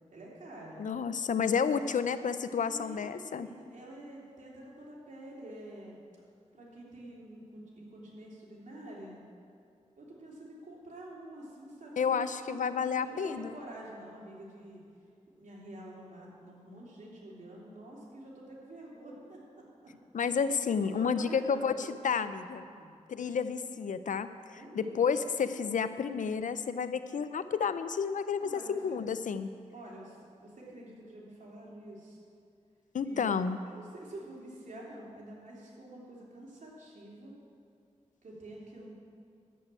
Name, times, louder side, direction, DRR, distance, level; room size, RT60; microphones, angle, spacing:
voice 1, 0.1-0.8 1.7-1.9 2.6-6.0 6.5-9.2 10.0-12.7 13.0-14.8 15.4-19.4 19.8-19.9 20.8-21.9 22.6-22.9 24.5-25.0 28.4-28.8 29.7-32.2 33.0-37.3 38.2-38.9, right 1 dB, 80° right, -4 dB, 3.1 m, -48 dB
voice 2, 0.8-3.5 12.0-13.5 20.1-22.6 23.1-28.4 28.7-29.5 32.9-33.6, left 6 dB, 85° left, 12 dB, 0.5 m, -31 dB
11.0 x 7.5 x 8.9 m, 2.4 s
cardioid pair, 55°, 13 cm